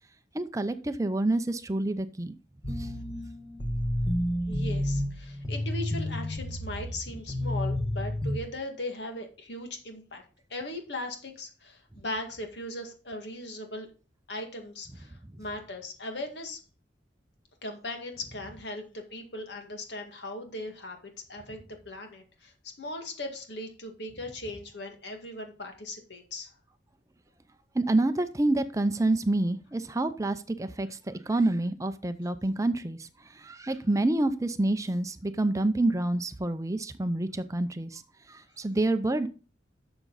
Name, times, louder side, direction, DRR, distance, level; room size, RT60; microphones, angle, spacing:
voice 1, 0.3-2.3 2.8-2.9 27.7-38.0 38.3-39.3, right 2 dB, 20° right, 10 dB, 0.5 m, -28 dB
sound 1, 2.6-8.4, left 1 dB, 25° left, 1.6 m, -30 dB
voice 2, 4.5-10.2 10.5-13.9 14.3-16.6 17.6-22.5 22.8-26.5, left 1 dB, 75° left, 4 dB, 2.0 m, -38 dB
12.0 x 7.0 x 4.0 m, 0.36 s
head